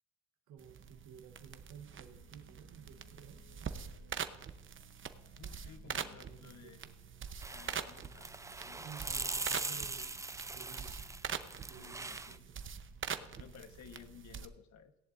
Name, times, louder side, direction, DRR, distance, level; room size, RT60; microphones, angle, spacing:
voice 1, 0.5-3.5 5.8-7.0 8.8-11.1 11.7-12.6, right 8 dB, 80° right, 3 dB, 1.1 m, -54 dB
sound 1, 0.6-14.5, right 7 dB, 40° right, 0.8 m, -44 dB
sound 2, 1.5-13.5, left 3 dB, 90° left, 1.7 m, -68 dB
voice 2, 5.4-6.8 7.5-8.9 11.8-12.5 13.1-15.0, left 7 dB, 65° left, 9 dB, 1.2 m, -56 dB
sound 3, 7.4-12.4, right 3 dB, 10° right, 0.4 m, -41 dB
17.0 x 10.5 x 2.5 m, 1.0 s
cardioid pair, 90°, 30 cm